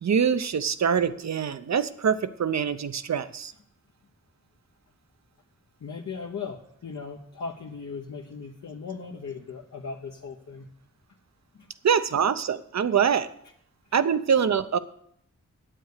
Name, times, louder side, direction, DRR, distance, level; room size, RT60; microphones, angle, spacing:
voice 1, 0.0-3.5 11.8-13.3 13.9-14.8, right 7 dB, 65° right, 13 dB, 0.7 m, -24 dB
voice 2, 5.8-10.7 11.5-11.7 13.8-14.0, left 5 dB, 70° left, 0 dB, 1.0 m, -38 dB
9.1 x 8.1 x 6.6 m, 0.70 s
wide cardioid pair, 70°, 30 cm